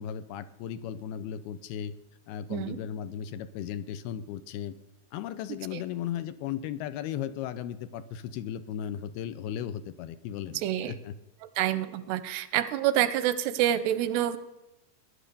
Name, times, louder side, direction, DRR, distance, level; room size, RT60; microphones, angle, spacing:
voice 1, 0.0-2.0 2.3-4.8 5.1-11.1, left 10 dB, 80° left, 12 dB, 2.6 m, -36 dB
voice 2, 10.5-11.0 11.6-14.4, right 12 dB, 90° right, 13 dB, 2.9 m, -27 dB
18.0 x 11.0 x 6.9 m, 0.93 s
omnidirectional pair, 4.7 m